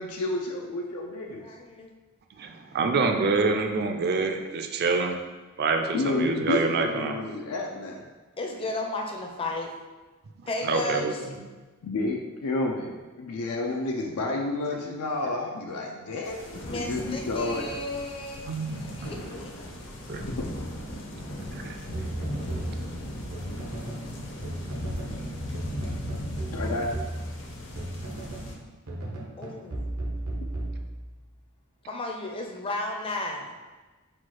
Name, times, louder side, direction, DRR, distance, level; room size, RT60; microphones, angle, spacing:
voice 1, 0.0-1.5 5.9-8.0 11.8-17.7 20.4-20.5 26.5-26.9, left 2 dB, 90° left, 0 dB, 0.4 m, -30 dB
voice 2, 1.2-1.9 8.4-9.7 10.5-11.3 16.7-19.5 29.4-29.9 31.9-33.5, left 2 dB, 25° left, 2 dB, 0.5 m, -34 dB
voice 3, 2.4-5.2 5.6-7.2 10.6-11.1 18.4-19.1 20.1-20.2 21.5-21.7 22.7-23.0, right 4 dB, 45° right, 4 dB, 0.4 m, -27 dB
sound 1, 16.2-28.6, equal, 55° left, 0.7 m, -37 dB
sound 2, 21.9-24.1 24.4-25.2 25.5-28.5 28.9-31.3, right 1 dB, 90° right, 0.8 m, -35 dB
4.4 x 2.3 x 4.5 m, 1.3 s
head